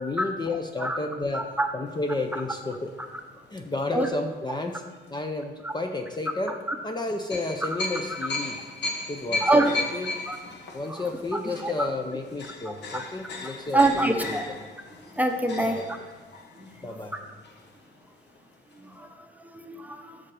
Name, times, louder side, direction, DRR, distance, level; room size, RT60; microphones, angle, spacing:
voice 1, 0.0-1.5 1.7-2.9 3.5-4.8 5.1-6.6 6.8-8.6 9.1-10.1 10.7-14.4 15.6-15.8 16.8-17.1, left 2 dB, 20° left, 4 dB, 0.6 m, -31 dB
voice 2, 1.3-1.7 3.9-4.1 5.6-5.7 9.4-9.7 10.3-10.4 10.9-11.1 11.6-11.7 12.9-13.0 13.7-14.5 15.2-15.8 16.6-16.7 18.8-20.2, right 2 dB, 10° right, 5 dB, 0.8 m, -25 dB
sound 1, 1.9-4.3 4.9-5.1 7.3-18.1 18.3-18.4 18.7-18.9, left 3 dB, 60° left, 1.1 m, -37 dB
7.3 x 6.0 x 4.9 m, 1.3 s
cardioid pair, 90°, 20 cm